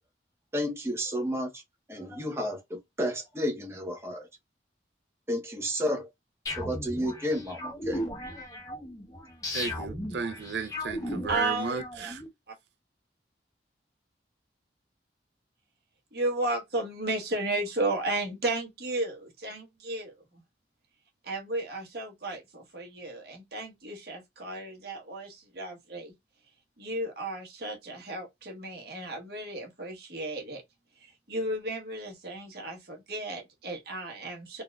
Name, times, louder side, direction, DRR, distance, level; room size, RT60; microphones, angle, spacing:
voice 1, 0.5-1.6 1.9-4.3 5.3-6.1 6.6-8.0, equal, 15° right, 0.7 m, -31 dB
sound 1, 6.5-12.3, left 1 dB, 20° left, 0.7 m, -36 dB
voice 2, 9.5-12.2, right 5 dB, 75° right, 0.5 m, -34 dB
voice 3, 11.3-12.1 12.5-12.6 16.1-20.1 21.2-26.1 26.8-30.6 31.0-34.6, right 2 dB, 60° right, 1.2 m, -34 dB
4.0 x 2.4 x 2.3 m
head